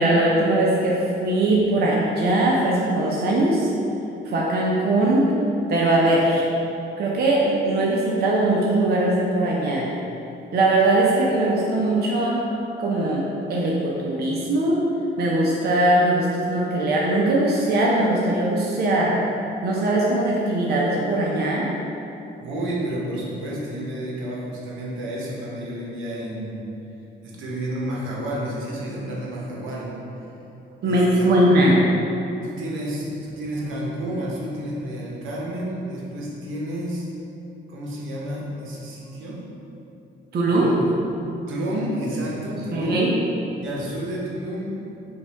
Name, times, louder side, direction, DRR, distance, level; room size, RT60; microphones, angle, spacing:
voice 1, 0.0-3.7 4.3-5.3 5.7-6.5 7.0-9.9 10.5-12.4 12.8-14.8 15.2-19.2 19.6-21.7 30.8-31.8 40.3-40.7 42.7-43.1, right 1 dB, 55° right, -3 dB, 0.6 m, -20 dB
voice 2, 22.3-26.6 27.2-30.0 30.8-31.6 32.4-37.1 37.7-39.4 40.5-40.8 41.5-43.1 43.6-44.8, right 1 dB, 80° right, -4 dB, 0.9 m, -30 dB
5.4 x 2.3 x 3.3 m, 2.9 s
cardioid pair, 90°, 20 cm